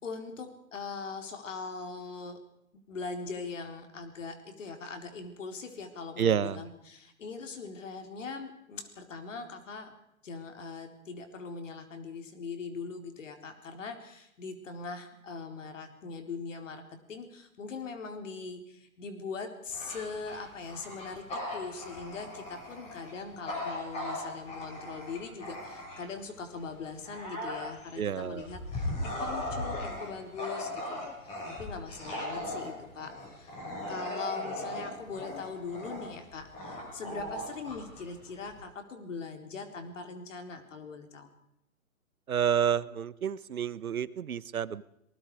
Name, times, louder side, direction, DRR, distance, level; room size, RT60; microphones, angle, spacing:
voice 1, 0.0-2.4 2.9-9.9 10.2-33.6 33.9-41.3, left 4 dB, 60° left, 5 dB, 4.2 m, -41 dB
voice 2, 6.2-6.6 28.0-28.5 42.3-44.8, right 8 dB, 70° right, 18 dB, 1.1 m, -29 dB
Bark / Growling, 19.7-26.2 26.7-38.6, left 1 dB, 15° left, 6.3 m, -38 dB
26.0 x 20.0 x 4.9 m, 0.80 s
hypercardioid pair, 155°, 43 cm